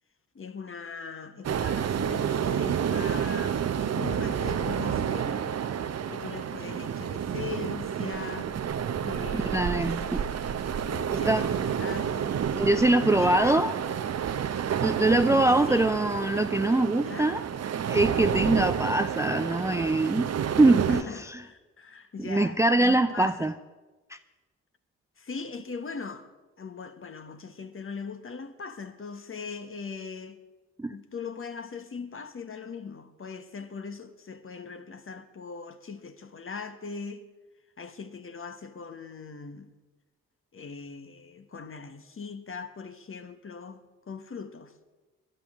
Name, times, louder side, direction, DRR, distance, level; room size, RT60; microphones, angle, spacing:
voice 1, 0.3-5.6 6.1-8.6 9.0-10.4 10.9-12.4 13.0-13.6 15.5-15.9 17.0-17.4 18.4-18.6 20.9-23.5 25.2-26.3 26.6-30.4 30.9-37.2 37.8-39.7 40.5-44.8, left 5 dB, 35° left, 1.3 m, -40 dB
sound 1, 1.4-21.0, right 8 dB, 45° right, 0.9 m, -30 dB
voice 2, 9.3-10.2 11.1-11.4 12.6-13.7 14.8-17.4 17.9-20.3 20.6-21.4 22.3-23.5 24.1-24.2 30.8-30.9, right 2 dB, 10° right, 0.5 m, -23 dB
21.0 x 11.5 x 3.7 m
hypercardioid pair, 45°, 35 cm